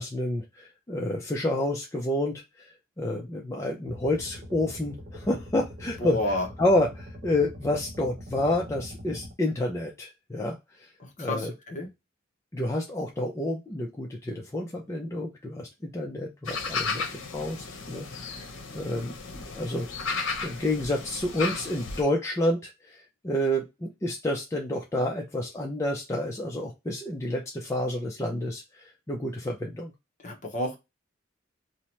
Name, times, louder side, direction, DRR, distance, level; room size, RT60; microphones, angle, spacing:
voice 1, 0.0-6.2 6.6-10.9 11.2-11.5 12.5-18.5 18.7-20.1 20.4-29.9, left 1 dB, 15° left, -1 dB, 0.4 m, -29 dB
sound 1, 3.9-9.3, equal, 45° right, 0.6 m, -43 dB
voice 2, 6.0-6.5 11.0-11.9 30.2-30.8, left 1 dB, 40° left, 2 dB, 0.7 m, -31 dB
sound 2, 16.4-22.0, left 4 dB, 80° left, 0.7 m, -34 dB
2.8 x 2.1 x 3.0 m, 0.23 s
head